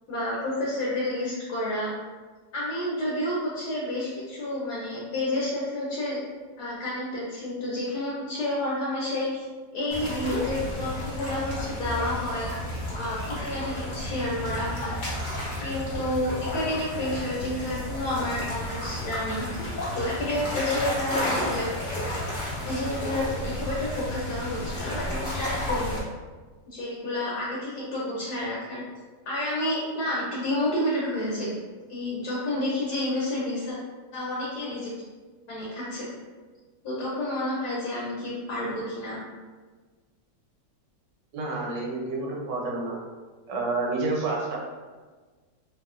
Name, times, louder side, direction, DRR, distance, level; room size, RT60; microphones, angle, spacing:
voice 1, 0.1-1.9 2.5-6.2 6.6-9.4 9.7-12.5 12.9-14.9 15.6-19.4 19.9-21.7 22.7-26.0 26.7-28.8 29.2-31.5 31.9-33.8 34.1-34.9 35.5-36.1 36.8-39.2, left 1 dB, 65° left, -6 dB, 1.3 m, -30 dB
sound 1, 9.9-26.0, left 1 dB, 40° left, 0.7 m, -32 dB
voice 2, 41.3-43.0 43.5-44.6, right 3 dB, 75° right, -2 dB, 1.3 m, -29 dB
3.3 x 2.9 x 2.4 m, 1.4 s
omnidirectional pair, 2.0 m